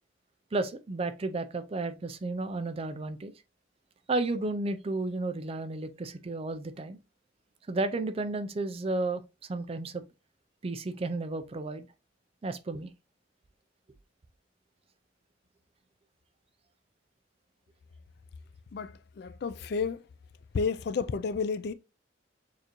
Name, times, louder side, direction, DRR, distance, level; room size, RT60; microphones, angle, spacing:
voice 1, 0.5-3.3 4.1-7.0 7.7-9.2 9.5-10.0 10.6-11.9 12.4-12.9, right 2 dB, 30° right, 0.4 m, -32 dB
voice 2, 18.7-20.0 20.5-21.7, left 5 dB, 60° left, 0.4 m, -31 dB
6.5 x 2.6 x 3.0 m
head